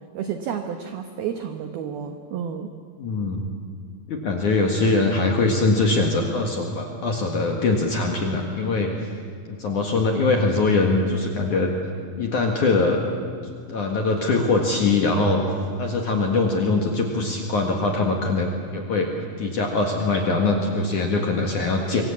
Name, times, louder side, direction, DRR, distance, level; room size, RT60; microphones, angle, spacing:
voice 1, 0.1-2.7, right 8 dB, 75° right, 6 dB, 2.2 m, -31 dB
voice 2, 3.0-3.5 4.1-9.1 9.5-11.7 12.2-13.0 13.7-19.1 19.4-22.0, left 3 dB, 55° left, 1 dB, 2.4 m, -22 dB
26.0 x 23.5 x 8.5 m, 2.1 s
omnidirectional pair, 6.0 m